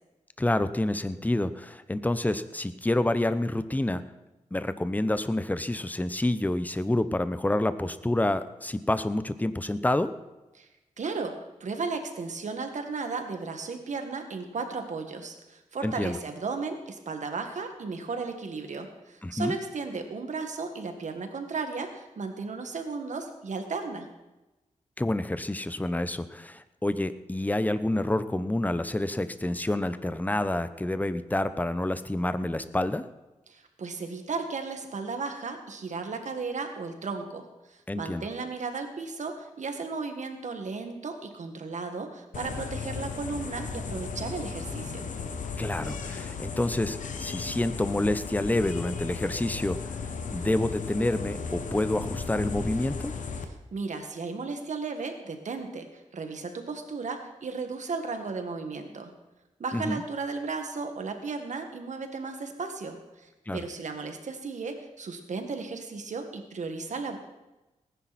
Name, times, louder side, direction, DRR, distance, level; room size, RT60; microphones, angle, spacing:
voice 1, 0.4-4.1 4.5-10.1 15.8-16.2 19.2-19.6 25.0-33.0 37.9-38.2 45.6-49.8 50.3-53.1 59.7-60.0 63.5-63.6, left 1 dB, 15° left, 12 dB, 0.9 m, -28 dB
voice 2, 11.0-24.1 33.5-45.1 53.7-59.1 59.6-67.2, right 4 dB, 70° right, 5 dB, 1.9 m, -35 dB
sound 1, 42.3-53.4, left 5 dB, 85° left, 1.2 m, -35 dB
19.0 x 10.0 x 4.3 m, 1.0 s
cardioid pair, 65°, 13 cm